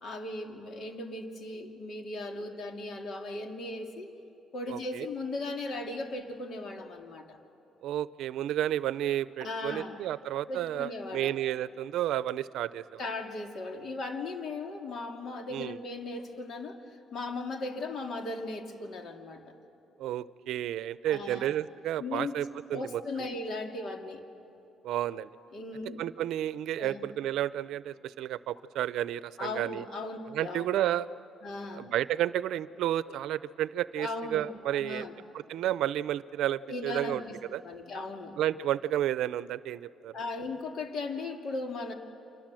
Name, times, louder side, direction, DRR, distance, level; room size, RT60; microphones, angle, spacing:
voice 1, 0.0-4.1 4.5-7.4 9.4-10.0 10.5-11.4 13.0-19.4 21.1-21.5 22.0-24.2 25.5-26.0 26.8-27.1 29.4-30.7 31.4-31.9 34.0-35.1 36.7-37.4 37.6-38.4 40.1-41.9, left 2 dB, 55° left, 3 dB, 2.8 m, -37 dB
voice 2, 4.7-5.1 7.8-13.0 15.5-15.8 20.0-22.5 22.7-23.0 24.8-25.3 26.0-29.8 30.3-31.1 31.7-35.1 35.5-37.2 37.5-37.6 38.4-40.1, right 12 dB, 80° right, 16 dB, 0.6 m, -31 dB
29.5 x 25.5 x 7.7 m, 2.9 s
cardioid pair, 105°, 0 cm